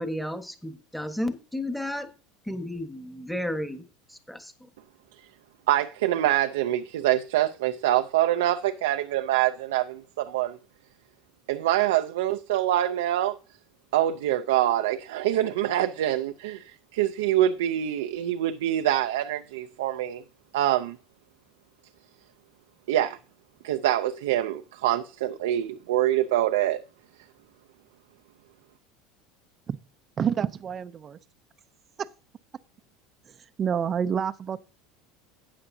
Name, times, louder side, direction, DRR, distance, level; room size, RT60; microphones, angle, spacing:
voice 1, 0.0-2.1 2.5-3.8 4.1-4.5, left 1 dB, ahead, 1.4 m, -32 dB
voice 2, 5.7-10.6 11.5-13.4 13.9-20.2 20.5-21.0 22.9-23.2 23.6-26.8, right 13 dB, 85° right, 0.6 m, -25 dB
voice 3, 30.2-31.2 32.0-32.1 33.6-34.7, right 7 dB, 35° right, 0.6 m, -28 dB
12.5 x 8.8 x 2.8 m
supercardioid pair, 105°, 0 cm